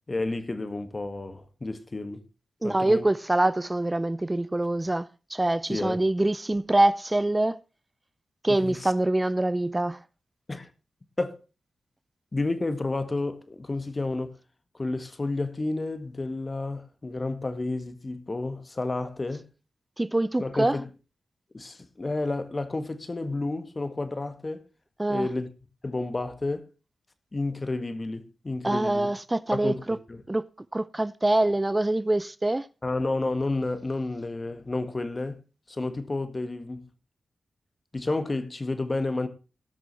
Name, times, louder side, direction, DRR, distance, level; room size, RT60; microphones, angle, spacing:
voice 1, 0.1-2.2 2.6-3.1 5.7-6.0 8.5-8.9 10.5-10.7 11.2-11.4 12.3-14.4 14.7-19.5 20.4-20.9 21.5-24.7 25.1-25.5 25.8-26.7 27.3-29.1 29.5-30.2 32.8-35.4 35.7-36.8 37.9-39.3, left 2 dB, 35° left, 1.7 m, -31 dB
voice 2, 2.6-7.6 8.4-10.0 20.0-20.8 25.0-25.3 28.6-30.0 30.3-32.7, right 1 dB, 20° right, 0.6 m, -25 dB
18.0 x 6.2 x 4.3 m
cardioid pair, 55°, 0 cm